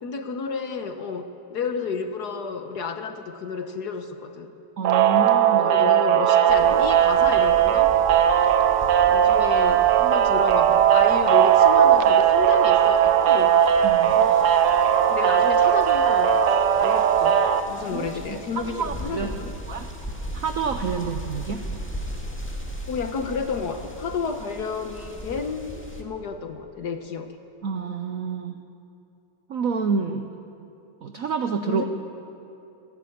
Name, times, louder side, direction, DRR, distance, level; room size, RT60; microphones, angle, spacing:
voice 1, 0.0-4.5 5.5-8.0 9.1-13.6 14.0-14.6 15.1-17.4 17.7-19.5 22.9-27.4 31.6-31.8, left 5 dB, 55° left, 7 dB, 1.3 m, -31 dB
voice 2, 4.8-5.7 13.8-14.2 17.8-19.9 20.3-21.7 27.6-28.6 29.5-30.4 31.0-31.8, right 5 dB, 65° right, 6 dB, 0.8 m, -29 dB
sound 1, 4.8-17.6, right 9 dB, 90° right, 1.8 m, -18 dB
sound 2, 6.5-26.0, equal, 5° left, 1.7 m, -38 dB
27.5 x 11.5 x 8.6 m, 2.8 s
omnidirectional pair, 2.4 m